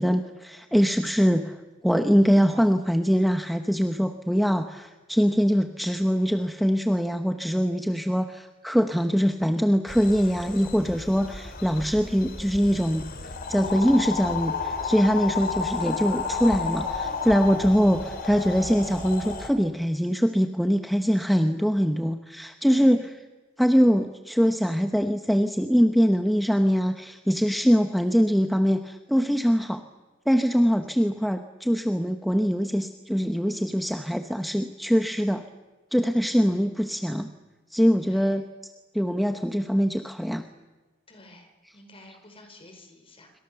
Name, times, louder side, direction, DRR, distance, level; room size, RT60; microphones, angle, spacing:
voice 1, 0.0-23.1 23.6-29.8 30.3-35.4 35.9-37.3 37.7-38.5 38.9-40.4, equal, ahead, 6 dB, 0.9 m, -23 dB
sound 1, 9.9-19.5, left 4 dB, 45° left, 3.1 m, -32 dB
voice 2, 38.0-38.4 41.1-43.3, left 1 dB, 30° left, 5 dB, 5.1 m, -51 dB
27.0 x 25.0 x 6.9 m, 1.2 s
head